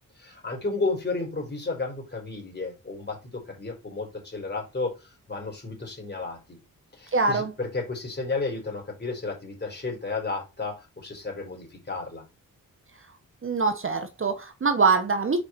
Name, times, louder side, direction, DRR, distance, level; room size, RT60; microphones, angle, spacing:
voice 1, 0.2-6.6 6.9-12.2, left 3 dB, 30° left, 4.3 m, -32 dB
voice 2, 7.1-7.5 13.4-15.4, right 4 dB, 40° right, 1.1 m, -23 dB
6.9 x 4.8 x 4.4 m
cardioid pair, 80°, 34 cm